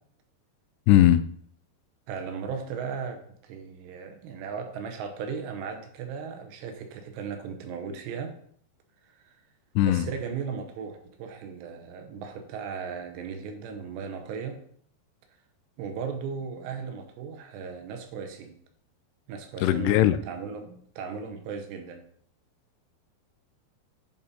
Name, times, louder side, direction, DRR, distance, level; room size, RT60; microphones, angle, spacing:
voice 1, 0.9-1.2 9.8-10.1 19.6-20.2, left 13 dB, 85° left, 13 dB, 2.6 m, -19 dB
voice 2, 2.1-8.4 9.0-9.4 9.8-14.6 15.8-18.5 19.3-22.0, right 6 dB, 85° right, 5 dB, 3.2 m, -37 dB
10.5 x 4.3 x 4.1 m, 0.62 s
omnidirectional pair, 4.8 m